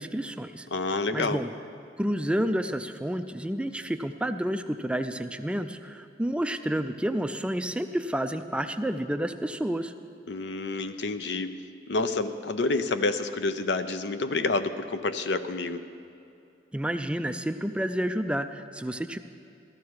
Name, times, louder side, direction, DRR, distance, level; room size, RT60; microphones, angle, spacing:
voice 1, 0.0-0.7 1.1-1.5 2.0-9.9 16.7-19.2, right 1 dB, 5° right, 9 dB, 0.4 m, -30 dB
voice 2, 0.7-1.4 10.3-11.6 11.9-15.8, left 3 dB, 70° left, 10 dB, 0.6 m, -28 dB
14.0 x 14.0 x 4.7 m, 2.6 s
head